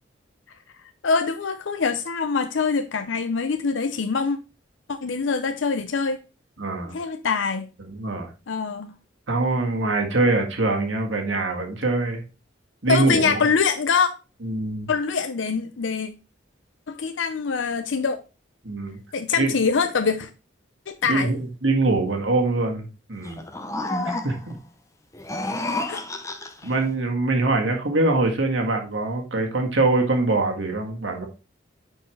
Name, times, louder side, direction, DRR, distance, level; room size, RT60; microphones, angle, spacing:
voice 1, 1.0-4.4 4.9-6.2 6.9-7.7 8.5-8.9 12.9-14.1 14.9-16.1 16.9-18.2 19.1-20.3 20.9-21.3 25.9-26.0, left 5 dB, 85° left, 0.6 m, -24 dB
voice 2, 6.6-6.9 7.8-8.3 9.3-12.2 12.8-13.4 14.4-14.9 18.6-19.0 19.4-19.5 21.1-23.5 24.0-24.5 26.6-31.3, right 2 dB, 85° right, 1.8 m, -23 dB
sound 1, 23.2-24.6 25.1-26.7, left 2 dB, 15° left, 0.7 m, -30 dB
9.5 x 4.6 x 3.2 m
head